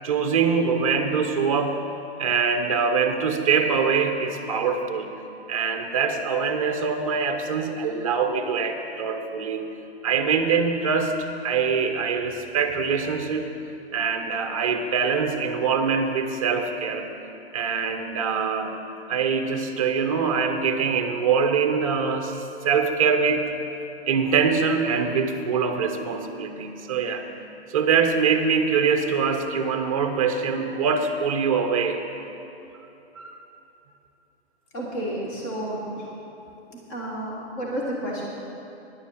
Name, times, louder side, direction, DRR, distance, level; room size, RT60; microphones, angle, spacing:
voice 1, 0.0-1.8 2.2-5.1 5.5-9.7 10.0-11.2 11.4-13.5 13.9-17.1 17.5-18.8 19.1-23.6 24.1-27.2 27.7-32.1 33.2-33.3, right 5 dB, 30° right, 5 dB, 0.8 m, -24 dB
voice 2, 34.7-36.1 36.7-38.2, right 1 dB, 20° left, -4 dB, 1.4 m, -31 dB
10.5 x 7.1 x 7.1 m, 2.9 s
hypercardioid pair, 170°, 34 cm